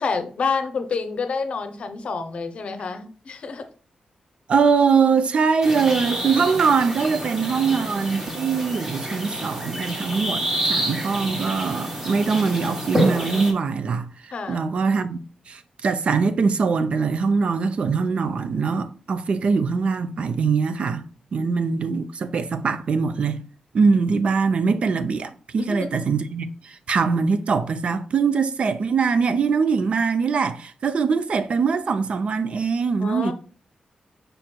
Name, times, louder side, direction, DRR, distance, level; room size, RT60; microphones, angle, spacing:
voice 1, 0.0-3.7 14.3-14.7 21.4-21.9 25.6-25.9 33.0-33.3, left 4 dB, 55° left, 0.6 m, -28 dB
voice 2, 4.5-15.2 15.5-21.0 21.3-23.4 23.7-33.3, right 5 dB, 55° right, 0.4 m, -22 dB
sound 1, 5.6-13.5, right 1 dB, 20° right, 1.2 m, -28 dB
5.1 x 4.3 x 2.2 m
wide cardioid pair, 135°, 2 cm